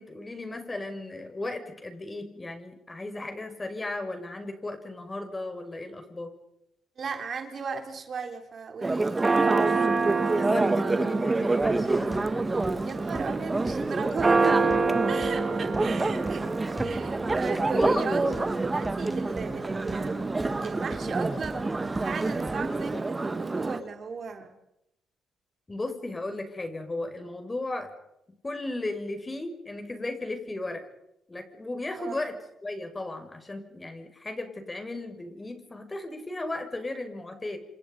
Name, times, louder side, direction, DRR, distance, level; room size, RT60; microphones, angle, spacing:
voice 1, 0.0-6.3 10.1-12.3 17.7-18.3 25.7-27.9 28.4-30.9 31.3-32.4 32.6-37.6, left 2 dB, 20° left, 6 dB, 6.0 m, -35 dB
voice 2, 7.0-9.4 12.8-14.7 15.1-16.5 16.8-20.3 20.6-24.6 31.9-32.2, right 5 dB, 50° right, 5 dB, 3.8 m, -36 dB
Church bell, 8.8-23.8, right 3 dB, 20° right, 1.7 m, -26 dB
sound 1, 11.6-23.0, equal, 5° left, 7.4 m, -43 dB
28.5 x 27.0 x 5.5 m, 0.82 s
cardioid pair, 90°, 0 cm